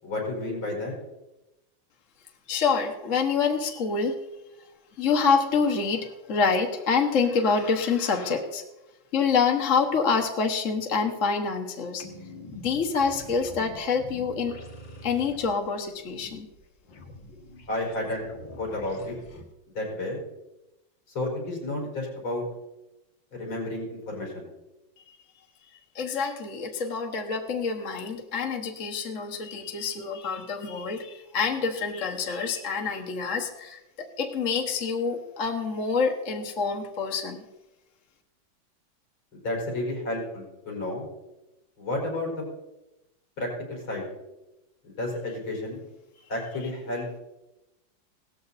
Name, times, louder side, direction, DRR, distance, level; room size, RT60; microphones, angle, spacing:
voice 1, 0.0-0.9 17.7-18.3 18.6-19.2 19.8-20.2 21.2-22.4 23.4-24.5 39.3-41.1 41.8-42.3 43.4-44.1 44.8-45.8 46.3-47.1, left 2 dB, 85° left, -1 dB, 5.7 m, -31 dB
voice 2, 2.5-4.2 5.0-8.6 9.1-12.0 12.5-14.6 15.0-16.5 25.1-25.2 25.9-37.4, left 5 dB, 45° left, 3 dB, 1.5 m, -27 dB
sound 1, 12.0-19.4, left 1 dB, 65° left, 2.5 m, -45 dB
17.5 x 13.5 x 4.1 m, 0.98 s
omnidirectional pair, 2.2 m